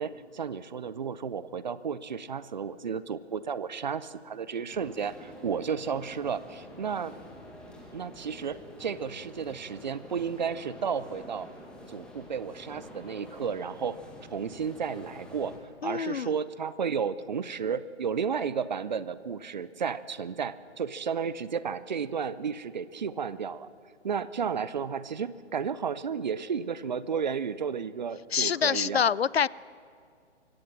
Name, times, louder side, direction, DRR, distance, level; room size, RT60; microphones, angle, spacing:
voice 1, 0.0-7.2 7.9-11.5 11.9-14.0 14.3-15.5 15.8-23.7 24.0-29.1, right 6 dB, 40° right, 17 dB, 0.7 m, -33 dB
sound 1, 4.7-15.6, left 1 dB, ahead, 1.7 m, -48 dB
voice 2, 15.8-16.3 28.3-29.5, left 7 dB, 60° left, 23 dB, 0.5 m, -26 dB
24.0 x 16.5 x 7.5 m, 2.3 s
figure-of-eight pair, 140°, 36 cm